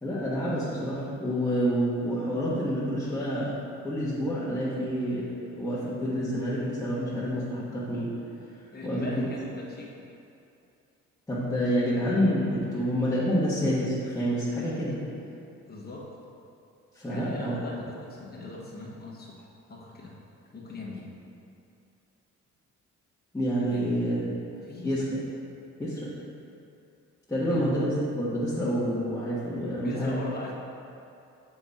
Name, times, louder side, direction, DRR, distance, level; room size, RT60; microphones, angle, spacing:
voice 1, 0.0-8.1 8.8-9.1 11.3-15.0 16.9-17.6 23.3-24.3 24.8-25.0 25.8-26.1 27.3-30.2, equal, 10° left, -12 dB, 1.4 m, -28 dB
voice 2, 8.7-10.1 12.7-12.8 15.7-16.1 17.1-20.2 20.5-21.1 23.7-24.3 24.5-25.1 27.4-27.6 29.8-30.5, left 2 dB, 30° left, -4 dB, 1.2 m, -41 dB
6.8 x 4.2 x 3.6 m, 2.6 s
cardioid pair, 90°, 30 cm